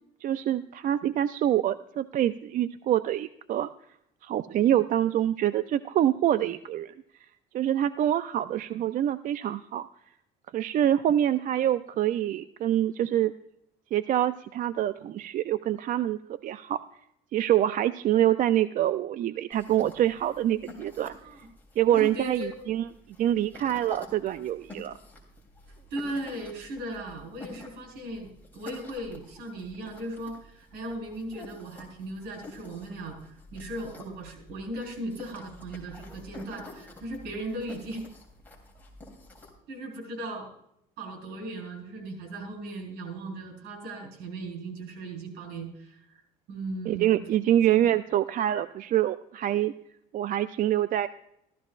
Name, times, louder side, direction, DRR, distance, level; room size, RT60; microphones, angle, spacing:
voice 1, 0.2-3.7 4.2-6.9 7.5-9.9 10.5-13.3 13.9-16.8 17.3-21.1 21.8-22.8 23.2-25.0 46.9-49.7 50.1-51.1, right 12 dB, 50° right, 12 dB, 0.4 m, -25 dB
sound 1, 19.5-39.5, left 1 dB, 10° left, 3.2 m, -48 dB
voice 2, 21.2-21.5 22.0-22.6 25.9-38.1 39.7-40.5 41.0-46.1 46.5-47.2 47.8-47.9, right 1 dB, 80° right, 2 dB, 4.4 m, -37 dB
14.5 x 13.5 x 2.4 m, 0.77 s
cardioid pair, 110°, 17 cm